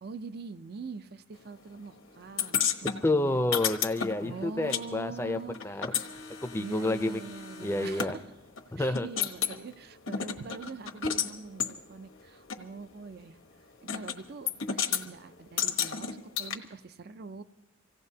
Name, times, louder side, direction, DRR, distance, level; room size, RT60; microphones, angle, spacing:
voice 1, 0.0-3.4 4.2-5.6 6.6-8.2 8.8-13.4 13.8-17.4, right 4 dB, 55° right, 13 dB, 0.5 m, -43 dB
sound 1, 2.4-4.8 5.1-8.1 8.6-8.7 8.9-9.6 10.1-11.3 11.6-11.7 12.5-12.6 13.9-14.2 14.5-15.0 15.6-16.5, left 8 dB, 80° left, 1.1 m, -32 dB
voice 2, 3.0-5.9 6.4-7.2 7.6-8.1 8.7-9.1, left 2 dB, 15° left, 8 dB, 0.5 m, -29 dB
25.5 x 16.5 x 2.8 m, 1.0 s
head